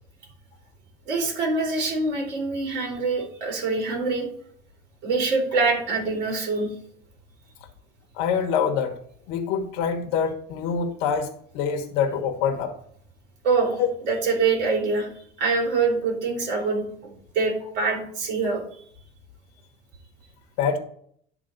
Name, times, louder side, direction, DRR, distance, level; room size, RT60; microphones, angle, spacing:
voice 1, 1.0-4.3 5.0-6.7 13.4-13.8 14.1-18.8, right 4 dB, 60° right, 0 dB, 3.4 m, -25 dB
voice 2, 8.1-8.9 9.3-12.7 13.8-13.9 20.6-20.8, left 7 dB, 75° left, 3 dB, 1.3 m, -25 dB
10.0 x 3.5 x 5.1 m, 0.62 s
supercardioid pair, 115°, 20 cm